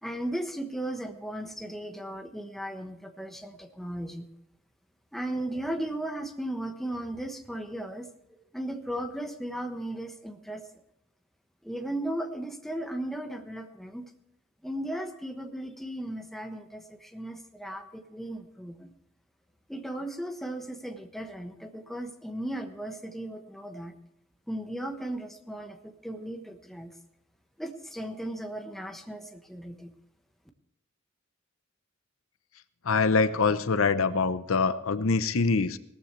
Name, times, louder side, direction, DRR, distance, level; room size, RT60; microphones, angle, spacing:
voice 1, 0.0-4.2 5.1-10.6 11.6-14.1 14.6-18.9 19.7-23.9 24.5-26.9 27.6-29.9, right 1 dB, ahead, 4 dB, 1.2 m, -36 dB
voice 2, 32.8-35.8, left 4 dB, 80° left, 13 dB, 0.7 m, -24 dB
17.5 x 14.0 x 3.2 m, 0.79 s
head